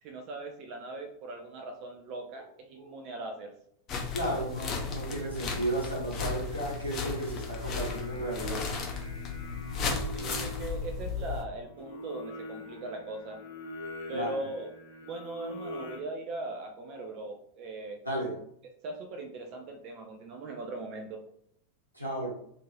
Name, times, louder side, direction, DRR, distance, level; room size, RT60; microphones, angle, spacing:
voice 1, 0.0-3.5 4.2-4.4 10.1-13.4 14.1-14.7 15.0-18.0 18.8-21.2, right 2 dB, 40° right, 4 dB, 0.4 m, -40 dB
sound 1, 3.9-11.4, left 4 dB, 35° left, 0.6 m, -35 dB
voice 2, 4.1-8.7 12.7-12.8 14.1-14.3 18.0-18.3 21.9-22.3, right 1 dB, 85° right, -3 dB, 1.2 m, -34 dB
Singing, 7.2-16.0, left 2 dB, 70° left, 0.7 m, -44 dB
2.6 x 2.5 x 3.1 m, 0.69 s
figure-of-eight pair, 90°, 0 cm